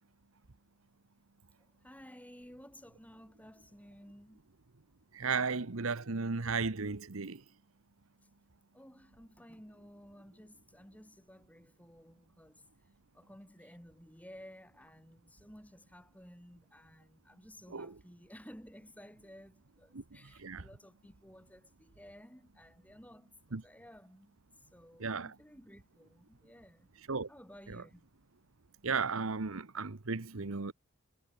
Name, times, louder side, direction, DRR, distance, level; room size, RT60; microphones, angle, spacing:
voice 1, 1.6-4.5 8.7-12.7 13.1-26.9 27.3-28.1, equal, 5° left, 6.4 m, -55 dB
voice 2, 5.1-7.4 17.7-17.9 19.9-20.0 20.4-20.7 23.5-23.6 25.0-25.3 27.1-27.3 27.7-27.8 28.8-30.7, right 4 dB, 75° right, 1.1 m, -35 dB
head